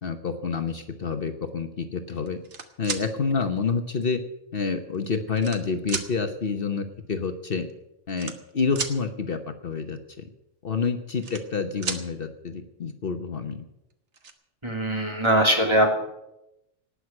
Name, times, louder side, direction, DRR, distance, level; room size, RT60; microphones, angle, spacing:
voice 1, 0.0-2.4 2.8-4.2 4.5-7.7 8.1-10.3 10.6-13.7, left 5 dB, 55° left, 7 dB, 1.2 m, -28 dB
sound 1, 2.3-3.0 4.0-4.1 4.9-5.6 5.9-6.1 7.2-7.3 7.5-7.7 8.1-9.0 10.8-11.6 11.8-12.0 13.5-13.6 13.9-14.3, right 5 dB, 80° right, 1.6 m, -33 dB
voice 2, 14.6-16.0, right 1 dB, 25° right, 1 dB, 2.9 m, -21 dB
18.5 x 6.3 x 9.7 m, 0.89 s
omnidirectional pair, 1.2 m